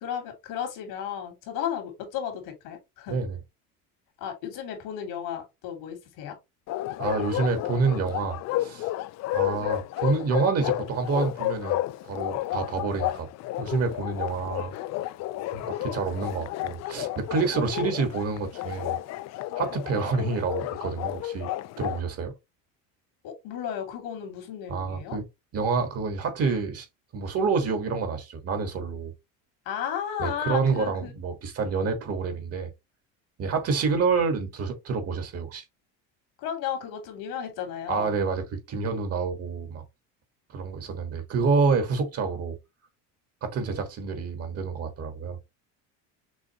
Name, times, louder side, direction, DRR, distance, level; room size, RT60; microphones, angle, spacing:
voice 1, 0.0-3.2 4.2-6.3 23.2-25.2 29.7-31.1 36.4-38.2, left 9 dB, 75° left, 2.4 m, -34 dB
Bark, 6.7-22.0, left 15 dB, 50° left, 0.4 m, -32 dB
voice 2, 7.0-8.9 9.3-13.3 13.6-14.7 15.5-19.0 19.5-21.5 21.8-22.3 24.7-25.2 25.5-26.9 27.1-29.1 30.2-32.7 33.4-35.6 37.9-39.8 40.5-42.6 43.4-45.4, right 4 dB, 40° right, 1.5 m, -28 dB
6.2 x 2.6 x 2.8 m
supercardioid pair, 115°, 37 cm